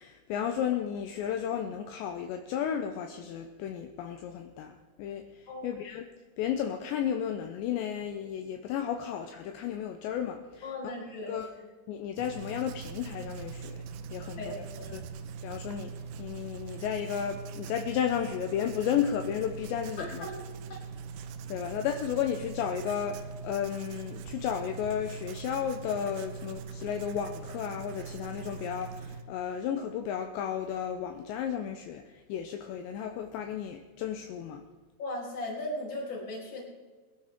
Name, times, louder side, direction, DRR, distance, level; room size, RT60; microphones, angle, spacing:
voice 1, 0.0-6.1 6.4-10.9 11.3-11.5 11.9-13.8 14.1-14.7 14.9-15.1 15.4-20.3 21.5-34.6, left 9 dB, 80° left, 5 dB, 2.7 m, -33 dB
voice 2, 10.6-11.4 14.4-14.9 20.0-20.4 20.7-20.8 35.0-36.6, left 1 dB, 30° left, -3 dB, 3.3 m, -37 dB
Writing, 12.2-29.2, right 6 dB, 80° right, 2.5 m, -42 dB
21.5 x 12.0 x 3.7 m, 1.4 s
omnidirectional pair, 5.6 m